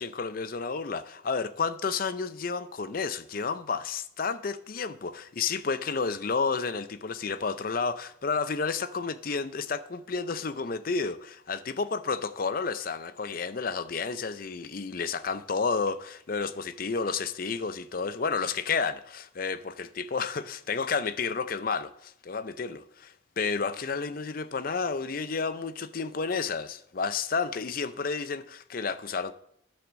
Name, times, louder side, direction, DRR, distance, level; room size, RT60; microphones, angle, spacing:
voice 1, 0.0-29.3, left 5 dB, 45° left, 0.5 m, -31 dB
10.0 x 6.1 x 6.2 m
head